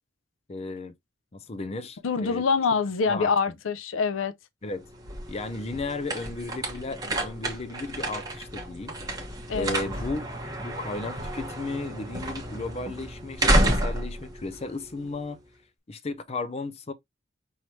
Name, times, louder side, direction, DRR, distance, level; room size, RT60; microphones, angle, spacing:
voice 1, 0.5-0.9 1.3-2.5 3.1-3.3 4.6-4.9 5.3-9.0 9.5-10.3 10.6-15.4 15.9-16.9, left 3 dB, 30° left, 0.5 m, -34 dB
voice 2, 2.0-4.3 9.5-9.9, left 5 dB, 85° left, 0.5 m, -25 dB
sound 1, 4.7-15.4, right 1 dB, 20° right, 1.1 m, -30 dB
5.5 x 3.1 x 3.1 m
head